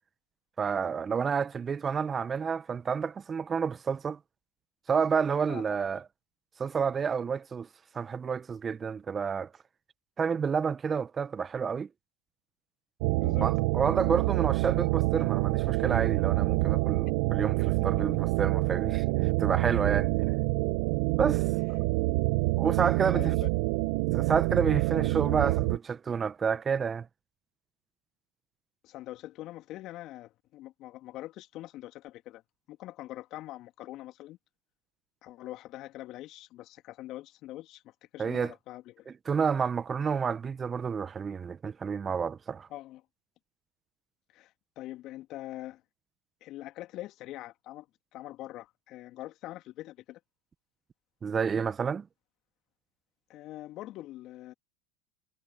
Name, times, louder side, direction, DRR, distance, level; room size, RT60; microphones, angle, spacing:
voice 1, 0.6-4.2 4.9-6.0 6.6-7.7 7.9-9.5 10.2-11.9 13.4-20.1 21.2-21.4 22.6-23.3 24.1-27.1 38.2-38.5 39.1-42.7 51.2-52.0, right 6 dB, 25° right, 1.5 m, -29 dB
voice 2, 5.5-5.9 13.2-13.5 17.8-18.2 23.1-23.5 24.7-25.2 28.8-32.4 32.7-34.4 35.2-39.1 42.7-43.0 44.3-45.8 46.4-47.9 48.1-50.2 53.3-54.5, left 15 dB, 45° left, 3.0 m, -43 dB
sound 1, 13.0-25.8, right 25 dB, 60° right, 1.2 m, -27 dB
hypercardioid pair, 90°, 0 cm